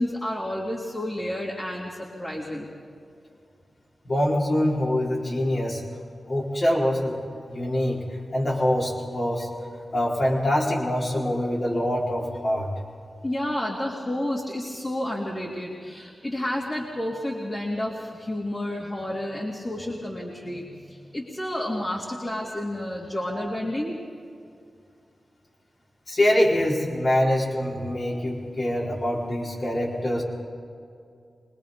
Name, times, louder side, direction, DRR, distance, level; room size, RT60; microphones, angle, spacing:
voice 1, 0.0-2.7 13.2-23.9, left 1 dB, 30° left, -4 dB, 3.3 m, -30 dB
voice 2, 4.0-5.8 6.3-9.5 9.9-12.7 26.1-30.2, left 1 dB, 55° left, -5 dB, 4.6 m, -24 dB
24.0 x 20.5 x 5.3 m, 2.3 s
cardioid pair, 60°, 0 cm